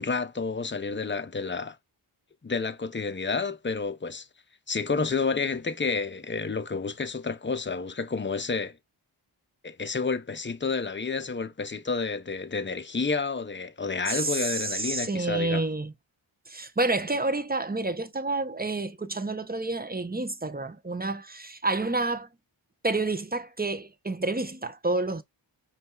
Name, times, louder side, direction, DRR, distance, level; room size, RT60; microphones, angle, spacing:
voice 1, 0.0-1.8 2.4-4.3 4.7-8.8 9.6-15.6, left 4 dB, 25° left, 0.7 m, -30 dB
voice 2, 14.0-15.9 16.5-22.3 22.8-25.2, right 2 dB, 20° right, 0.8 m, -29 dB
5.3 x 3.4 x 2.4 m
cardioid pair, 45°, 48 cm